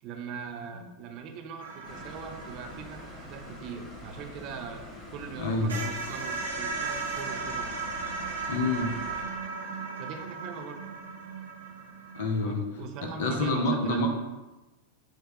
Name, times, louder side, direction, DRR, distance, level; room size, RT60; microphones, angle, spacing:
voice 1, 0.0-4.8 5.1-7.8 10.0-10.9 12.4-14.1, right 6 dB, 40° right, 4 dB, 0.4 m, -41 dB
sound 1, 1.6-5.0 5.3-5.4 5.7-12.4, right 4 dB, 70° right, 0.8 m, -36 dB
sound 2, 1.8-9.2, left 2 dB, 25° left, 0.8 m, -46 dB
voice 2, 5.4-5.9 8.5-8.9 12.1-12.6 13.0-14.1, left 2 dB, 55° left, 3 dB, 0.6 m, -28 dB
6.3 x 2.2 x 2.7 m, 1.1 s
figure-of-eight pair, 90°, 0 cm